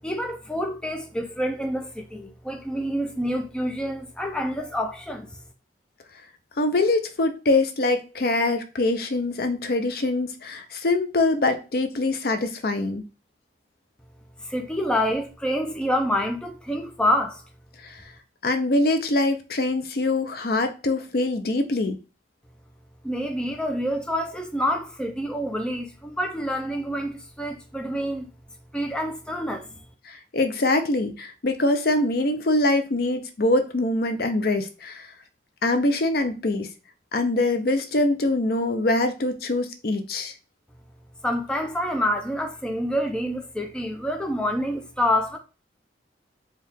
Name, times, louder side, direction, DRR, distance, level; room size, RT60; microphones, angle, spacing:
voice 1, 0.0-5.3 14.4-17.4 23.0-28.3 28.7-29.8 41.2-45.4, equal, 5° left, 0.5 m, -27 dB
voice 2, 6.6-13.0 17.8-18.0 18.4-22.0 30.1-35.1 35.6-36.7 37.1-40.3, left 2 dB, 55° left, 0.6 m, -24 dB
4.5 x 2.4 x 3.5 m
head